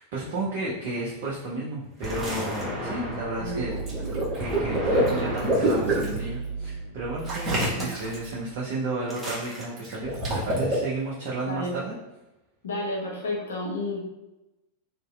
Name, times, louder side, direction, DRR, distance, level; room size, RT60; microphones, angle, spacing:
voice 1, 0.0-3.7 4.4-11.9, right 2 dB, 50° right, -6 dB, 0.6 m, -32 dB
sound 1, 2.0-3.5 4.4-5.9 7.3-7.8 9.1-9.6, equal, 5° right, 0.9 m, -34 dB
sound 2, 3.0-9.0, right 5 dB, 90° left, 1.1 m, -37 dB
voice 2, 3.4-3.7 7.7-7.9 11.5-11.8 12.6-14.0, left 2 dB, 70° left, -3 dB, 0.8 m, -31 dB
Water / Liquid, 3.7-6.2 7.2-8.3 9.8-10.7, right 1 dB, 25° right, 1.1 m, -26 dB
2.9 x 2.7 x 2.3 m, 0.97 s
figure-of-eight pair, 90°, 0 cm